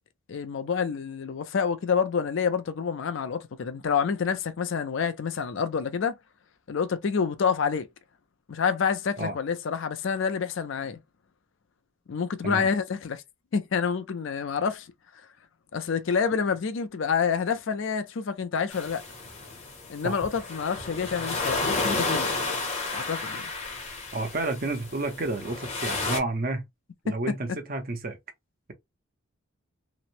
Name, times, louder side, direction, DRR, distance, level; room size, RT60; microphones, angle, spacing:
voice 1, 0.3-6.1 6.7-7.9 8.5-11.0 12.1-13.2 13.5-14.9 15.7-19.0 19.9-22.4 22.9-23.5 27.1-27.2, left 6 dB, 65° left, 0.4 m, -28 dB
sound 1, 18.7-26.2, left 3 dB, 30° left, 0.7 m, -32 dB
voice 2, 24.1-26.6 27.0-28.2, right 2 dB, 45° right, 0.7 m, -30 dB
2.9 x 2.0 x 2.5 m
head